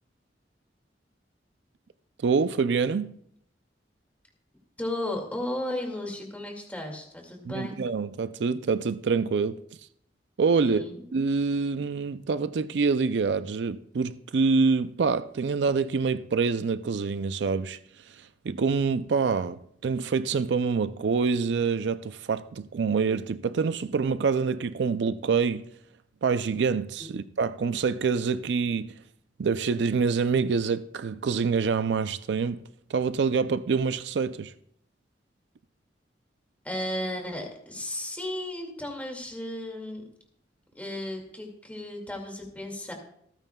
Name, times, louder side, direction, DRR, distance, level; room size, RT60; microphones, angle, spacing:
voice 1, 2.2-3.1 7.5-9.6 10.4-10.8 11.1-17.8 18.4-25.6 26.2-28.9 29.4-32.6 32.9-34.5, right 5 dB, 70° right, 0.4 m, -26 dB
voice 2, 4.8-7.8 10.5-11.0 27.0-27.2 36.6-40.0 40.7-42.9, left 1 dB, 10° left, 2.2 m, -34 dB
26.5 x 9.1 x 2.3 m
head